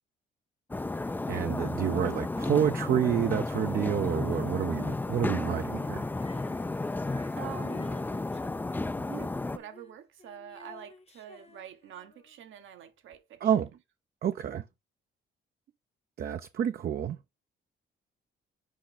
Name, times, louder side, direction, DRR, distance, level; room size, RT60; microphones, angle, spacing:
sound 1, 0.7-9.6, left 2 dB, 10° left, 0.3 m, -33 dB
voice 1, 1.3-6.1 13.4-13.7 14.2-14.6 16.2-17.2, right 9 dB, 50° right, 0.5 m, -29 dB
Female singing, 6.1-12.4 13.1-13.2, left 4 dB, 30° left, 0.8 m, -52 dB
voice 2, 7.4-7.9 9.0-13.5, right 10 dB, 75° right, 1.2 m, -46 dB
6.3 x 5.2 x 4.0 m
cardioid pair, 90°, 20 cm